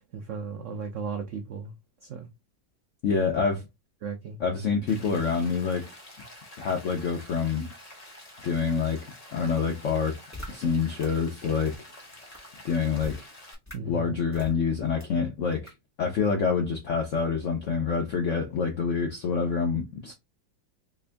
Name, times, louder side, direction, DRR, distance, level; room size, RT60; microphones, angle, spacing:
voice 1, 0.0-1.7 2.0-2.3 4.0-4.4 13.7-14.1, right 4 dB, 80° right, 0.6 m, -35 dB
voice 2, 3.0-3.6 4.4-5.9 6.6-7.7 8.4-9.0 9.3-10.2 10.5-11.7 12.6-13.3 13.9-15.7 16.0-20.1, left 5 dB, 75° left, 0.6 m, -27 dB
Rain, 4.9-13.5, left 1 dB, 35° left, 0.7 m, -48 dB
sound 1, 10.3-10.5 11.0-11.1 11.7-11.8 12.3-12.4 13.0-13.2 13.7-13.8 14.3-14.5 15.0-15.1 15.7-15.8, equal, 10° left, 1.0 m, -39 dB
3.5 x 2.6 x 3.3 m
omnidirectional pair, 2.1 m